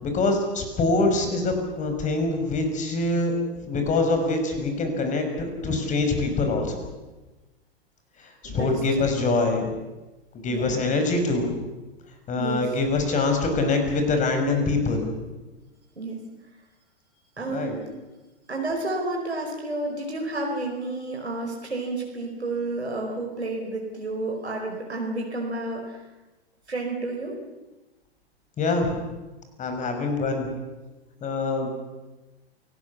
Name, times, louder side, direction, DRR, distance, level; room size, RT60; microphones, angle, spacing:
voice 1, 0.0-3.3 3.7-6.8 8.2-9.8 10.3-11.7 12.3-15.1 17.5-17.8 28.6-29.0 29.6-30.5 31.2-31.7, left 3 dB, 25° left, 5 dB, 5.6 m, -24 dB
voice 2, 8.4-9.1 10.5-10.9 12.4-12.7 15.9-16.2 17.4-17.9 18.5-26.0 26.7-27.3, right 2 dB, 90° right, 0 dB, 5.1 m, -31 dB
28.0 x 18.5 x 7.1 m, 1.1 s
figure-of-eight pair, 105°, 32 cm